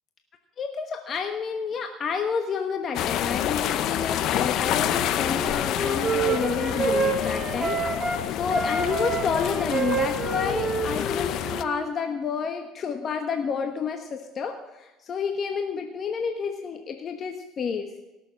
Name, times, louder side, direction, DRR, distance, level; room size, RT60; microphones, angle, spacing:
voice 1, 0.6-8.0 8.3-17.9, left 6 dB, 40° left, 5 dB, 1.1 m, -30 dB
sound 1, 2.9-11.6, left 11 dB, 60° left, 0.7 m, -28 dB
Wind instrument woodwind instrument, 5.3-8.2 8.5-11.9, right 4 dB, 10° right, 2.9 m, -28 dB
17.5 x 7.0 x 6.4 m, 1.1 s
supercardioid pair, 105°, 0 cm